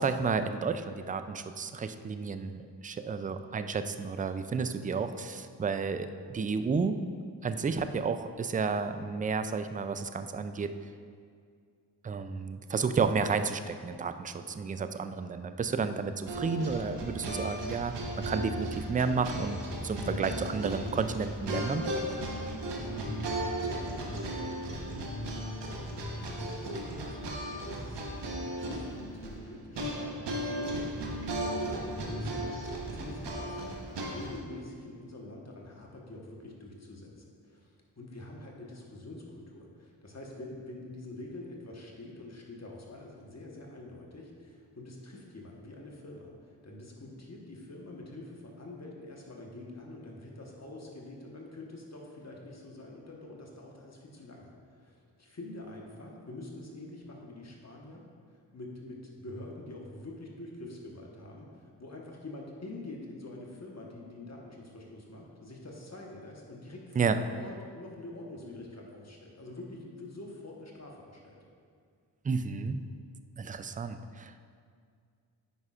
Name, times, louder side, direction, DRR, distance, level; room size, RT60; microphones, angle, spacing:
voice 1, 0.0-7.0 7.4-10.7 12.0-18.0 18.3-21.8 67.0-67.2 72.2-72.8 73.4-74.3, right 5 dB, 20° right, 10 dB, 0.3 m, -31 dB
voice 2, 14.3-14.7 22.3-25.3 25.9-32.5 32.9-58.0 58.3-71.4, left 2 dB, 40° left, -1 dB, 1.3 m, -46 dB
sound 1, 16.3-34.4, right 1 dB, 75° right, 1.1 m, -36 dB
9.6 x 5.5 x 2.5 m, 2.2 s
cardioid pair, 45°, 43 cm